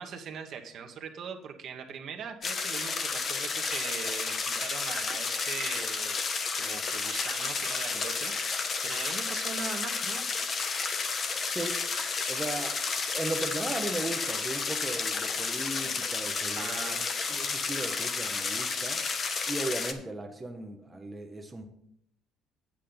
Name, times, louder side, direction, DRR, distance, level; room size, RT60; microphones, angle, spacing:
voice 1, 0.0-6.2 6.6-10.3 16.5-17.0, right 6 dB, 50° right, 4 dB, 1.1 m, -41 dB
sound 1, 2.4-19.9, left 4 dB, 35° left, 0.8 m, -31 dB
voice 2, 11.5-11.9 12.3-12.8 13.1-17.0 17.3-19.0 19.5-21.7, right 2 dB, 10° right, 3 dB, 0.7 m, -37 dB
8.6 x 8.2 x 3.9 m, 0.75 s
cardioid pair, 125°, 0 cm